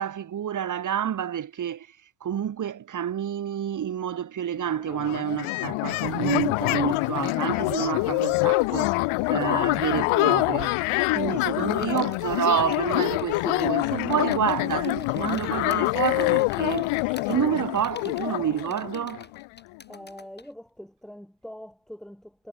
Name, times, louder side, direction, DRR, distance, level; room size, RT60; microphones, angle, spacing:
voice 1, 0.0-1.9 2.2-9.0 9.3-10.7 11.1-19.3, right 9 dB, 35° right, 1.8 m, -29 dB
sound 1, 4.6-4.7 4.9-19.5, left 24 dB, 80° left, 0.8 m, -25 dB
sound 2, 11.0-20.5, left 4 dB, 20° left, 5.0 m, -49 dB
voice 2, 19.9-22.5, equal, ahead, 3.7 m, -43 dB
cardioid pair, 120°, 49 cm